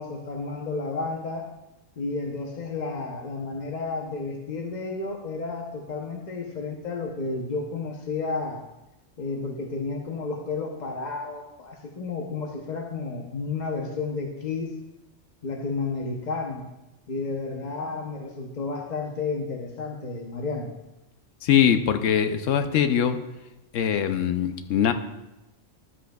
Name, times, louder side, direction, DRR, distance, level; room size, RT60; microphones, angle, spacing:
voice 1, 0.0-1.4 2.0-8.6 9.2-14.7 15.4-16.6 17.1-20.7, left 3 dB, 40° left, 1 dB, 0.8 m, -31 dB
voice 2, 21.4-23.2 23.7-24.9, left 9 dB, 80° left, 8 dB, 1.0 m, -22 dB
12.5 x 7.7 x 2.3 m, 0.95 s
omnidirectional pair, 1.3 m